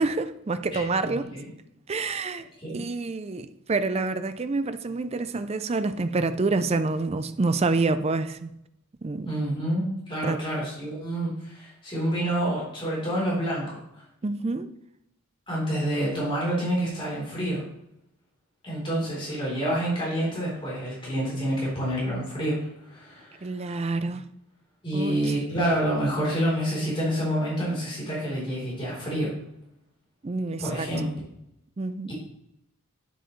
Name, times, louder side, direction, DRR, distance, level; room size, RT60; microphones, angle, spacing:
voice 1, 0.0-1.3 1.9-2.4 2.7-8.5 9.0-9.3 10.2-10.4 14.2-14.7 23.4-24.3 24.9-25.4 30.2-30.9 31.8-32.1, right 3 dB, 30° right, 0.4 m, -27 dB
voice 2, 0.7-1.5 2.6-2.8 9.2-14.0 15.5-17.6 18.6-22.6 22.8-23.8 24.8-29.3 30.6-31.1 32.1-32.2, right 1 dB, 25° left, 3.7 m, -28 dB
9.2 x 7.7 x 3.2 m
head